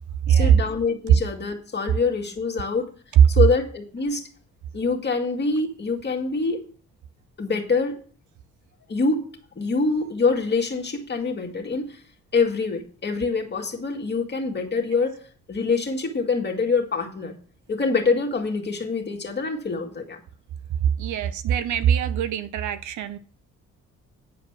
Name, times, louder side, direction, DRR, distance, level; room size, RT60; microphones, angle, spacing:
voice 1, 0.3-2.9 3.3-4.3 4.7-6.6 7.4-7.9 8.9-9.2 9.6-12.0 12.3-15.2 15.5-17.4 17.7-20.2, left 4 dB, 35° left, 2.0 m, -25 dB
voice 2, 21.0-23.2, right 9 dB, 75° right, 0.8 m, -21 dB
9.2 x 5.0 x 6.1 m
cardioid pair, 90°, 30 cm